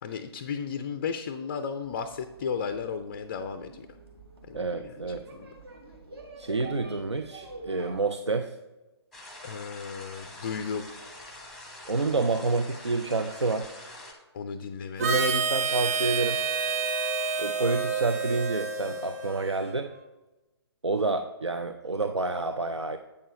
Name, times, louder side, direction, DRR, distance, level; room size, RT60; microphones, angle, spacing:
voice 1, 0.0-3.9 4.5-4.9 5.3-5.5 9.4-10.9 14.3-15.3, left 6 dB, 30° left, 10 dB, 0.3 m, -34 dB
sound 1, 1.8-8.0, right 3 dB, 60° right, 1.8 m, -47 dB
voice 2, 4.5-5.2 6.4-8.6 11.9-13.7 15.0-16.4 17.4-19.9 20.8-23.0, right 3 dB, 90° right, 8 dB, 0.5 m, -28 dB
sound 2, 9.1-14.1, left 1 dB, ahead, 0.9 m, -45 dB
Harmonica, 15.0-19.7, right 5 dB, 35° right, 0.9 m, -29 dB
8.4 x 6.5 x 3.1 m, 1.1 s
figure-of-eight pair, 135°, 14 cm